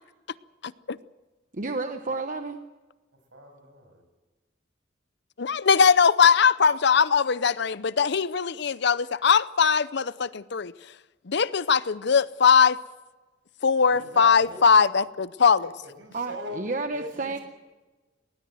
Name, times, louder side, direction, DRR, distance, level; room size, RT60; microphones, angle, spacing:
voice 1, 0.6-1.0 5.4-10.7 11.3-12.8 13.6-15.7, left 6 dB, 60° left, 0.6 m, -21 dB
voice 2, 1.5-2.6 16.1-17.4, right 3 dB, 45° right, 1.0 m, -31 dB
voice 3, 3.3-4.0 13.8-14.6 15.6-16.6 16.9-17.4, equal, 70° right, 6.6 m, -40 dB
19.5 x 19.0 x 7.7 m
head